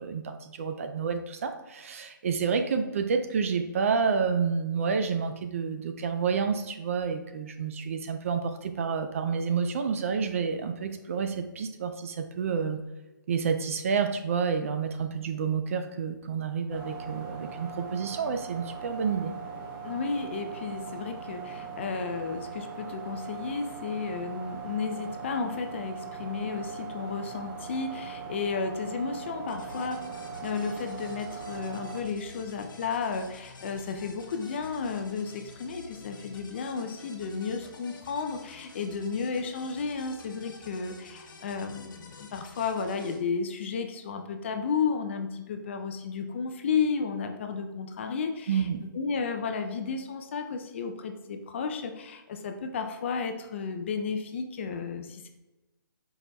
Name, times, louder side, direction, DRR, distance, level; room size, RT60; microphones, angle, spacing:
voice 1, 0.0-12.8 13.3-19.3 48.5-48.8, right 6 dB, 40° right, 7 dB, 0.4 m, -29 dB
sound 1, 16.7-32.0, right 6 dB, 20° right, 1.1 m, -40 dB
voice 2, 19.8-30.0 30.4-48.7 48.9-55.3, left 5 dB, 35° left, 5 dB, 0.4 m, -33 dB
sound 2, 29.5-43.2, left 3 dB, 65° left, 0.9 m, -49 dB
4.6 x 2.1 x 3.9 m, 1.0 s
hypercardioid pair, 150°, 11 cm